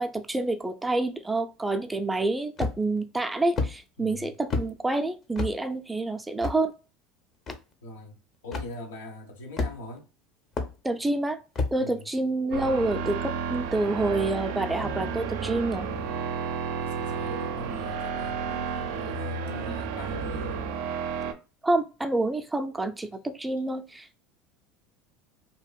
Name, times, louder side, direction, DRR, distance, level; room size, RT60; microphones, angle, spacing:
voice 1, 0.0-6.7 10.8-11.4 11.7-15.9 21.6-24.2, right 2 dB, 10° right, 0.4 m, -28 dB
sound 1, 2.6-3.0 3.6-3.7 4.5-4.7 5.3-5.5 6.4-6.6 7.5-7.6 8.5-8.7 9.6-10.0 10.6-10.7 11.5-11.8, left 3 dB, 40° left, 0.6 m, -28 dB
voice 2, 4.0-4.3 7.8-8.2 8.4-10.1 11.8-12.1 16.8-20.7, left 1 dB, 90° left, 0.8 m, -41 dB
sound 2, 12.5-21.3, right 6 dB, 75° right, 0.4 m, -32 dB
2.7 x 2.4 x 2.2 m
supercardioid pair, 95°, 0 cm